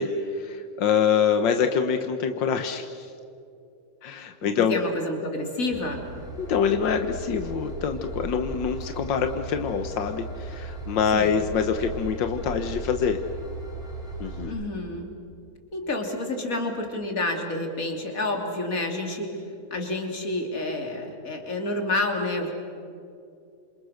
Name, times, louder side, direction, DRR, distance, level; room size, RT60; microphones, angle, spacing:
voice 1, 0.0-3.1 4.0-4.8 6.4-13.2 14.2-14.5, left 7 dB, 85° left, 7 dB, 1.8 m, -25 dB
voice 2, 4.4-6.0 11.1-11.4 14.4-15.1 15.7-19.4 19.7-22.5, left 2 dB, 50° left, 3 dB, 3.6 m, -29 dB
Train / Engine, 5.7-14.4, right 2 dB, ahead, 4.7 m, -37 dB
28.0 x 27.0 x 6.5 m, 2.6 s
omnidirectional pair, 1.9 m